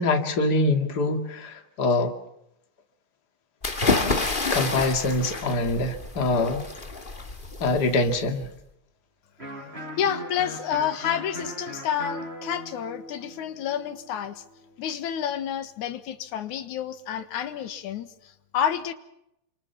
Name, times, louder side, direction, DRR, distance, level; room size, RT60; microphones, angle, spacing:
voice 1, 0.0-2.1 4.5-6.6 7.6-8.5, left 2 dB, 35° left, 6 dB, 2.6 m, -24 dB
sound 1, 3.6-8.4, left 3 dB, 20° left, 1.8 m, -28 dB
Electric guitar, 9.4-15.0, equal, 20° right, 6.5 m, -39 dB
voice 2, 10.0-14.4 14.8-18.9, left 9 dB, 85° left, 10 dB, 2.8 m, -29 dB
30.0 x 25.5 x 5.8 m, 0.82 s
omnidirectional pair, 3.3 m